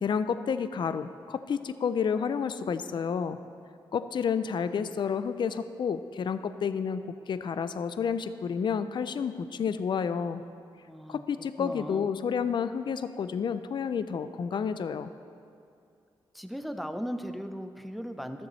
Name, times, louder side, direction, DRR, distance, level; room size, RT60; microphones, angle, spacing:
voice 1, 0.0-3.4 3.9-10.4 11.1-15.1, left 6 dB, 55° left, 12 dB, 0.4 m, -30 dB
voice 2, 10.9-11.2 11.6-12.1 16.3-18.5, equal, ahead, 7 dB, 0.6 m, -37 dB
13.0 x 7.0 x 3.1 m, 2.5 s
cardioid pair, 60°, 10 cm